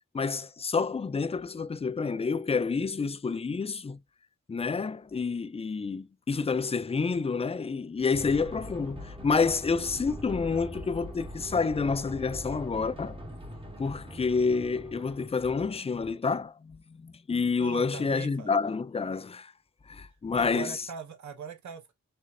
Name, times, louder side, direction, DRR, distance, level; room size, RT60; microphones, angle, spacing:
voice 1, 0.1-4.0 4.5-13.2 13.8-19.5 19.9-20.7, left 5 dB, 20° left, 0.4 m, -29 dB
sound 1, 8.1-15.3, equal, 20° right, 1.4 m, -42 dB
voice 2, 17.6-18.6 20.0-21.9, right 7 dB, 75° right, 1.3 m, -41 dB
5.1 x 3.8 x 2.7 m
wide cardioid pair, 105°, 29 cm